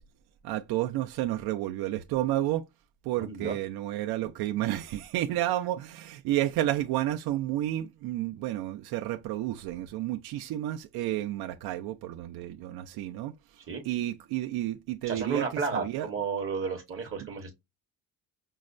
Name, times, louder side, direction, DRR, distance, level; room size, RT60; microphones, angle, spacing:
voice 1, 0.4-2.6 3.0-13.3 13.8-15.5 15.7-16.1, right 14 dB, 75° right, 0.5 m, -31 dB
voice 2, 3.2-3.5 13.7-13.8 15.0-17.5, right 5 dB, 35° right, 0.8 m, -32 dB
5.5 x 2.1 x 2.5 m
cardioid pair, 155°, 38 cm